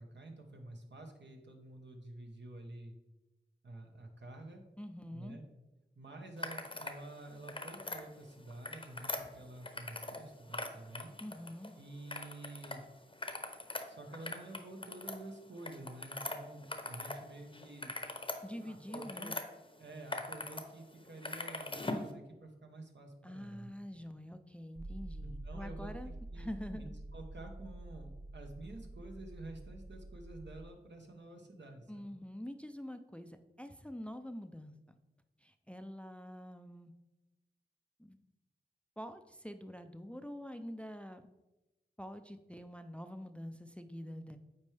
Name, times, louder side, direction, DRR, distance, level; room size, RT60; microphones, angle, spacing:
voice 1, 0.0-3.0 3.6-4.6 5.1-5.4 6.0-11.1 11.8-12.8 13.9-18.0 18.4-19.4 19.8-23.7 25.2-26.9 27.1-32.1, right 2 dB, 75° right, 3 dB, 1.0 m, -50 dB
voice 2, 4.8-5.4 11.2-11.7 18.4-19.4 23.2-26.1 26.4-26.9 31.9-35.0 35.4-36.9 38.0-38.2 39.0-41.3 42.0-44.4, equal, 5° left, 9 dB, 0.4 m, -46 dB
sound 1, 6.4-7.0 7.3-8.0 8.5-10.2 10.5-11.7 12.1-12.8 13.1-17.2 17.5-19.4 19.9-20.6 20.9-22.1, left 2 dB, 30° left, 0.8 m, -41 dB
sound 2, 24.7-30.7, right 2 dB, 50° right, 0.5 m, -47 dB
8.3 x 4.4 x 3.3 m, 1.0 s
wide cardioid pair, 40°, 19 cm